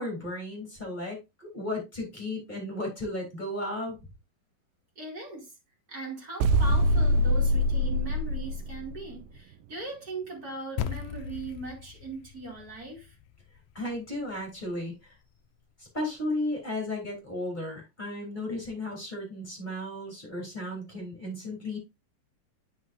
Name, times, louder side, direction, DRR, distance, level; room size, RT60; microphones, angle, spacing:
voice 1, 0.0-4.0 13.7-15.1 15.9-21.8, left 1 dB, 15° left, 3.3 m, -34 dB
voice 2, 5.0-5.5 5.9-13.1, right 3 dB, 30° right, 2.5 m, -39 dB
sound 1, 6.4-9.1, equal, 85° right, 2.3 m, -24 dB
sound 2, 10.8-15.3, left 9 dB, 85° left, 1.6 m, -39 dB
9.5 x 5.8 x 2.6 m
omnidirectional pair, 3.9 m